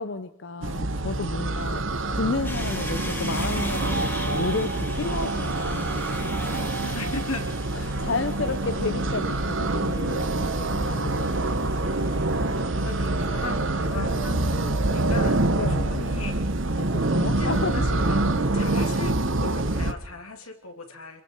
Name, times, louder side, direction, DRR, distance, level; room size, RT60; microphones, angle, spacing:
voice 1, 0.0-1.8 2.1-6.0 6.8-7.0 7.7-11.6 14.0-14.1 15.6-15.8 16.8-17.9, left 3 dB, 55° left, 9 dB, 0.8 m, -32 dB
sound 1, 0.6-19.9, right 2 dB, 60° right, 1.2 m, -26 dB
sound 2, 2.4-13.6, left 1 dB, 10° left, 3.3 m, -40 dB
voice 2, 6.9-7.5 12.5-15.4 15.7-16.4 16.7-16.8 17.2-21.2, left 3 dB, 80° left, 5 dB, 2.8 m, -37 dB
27.5 x 22.5 x 4.6 m, 0.78 s
head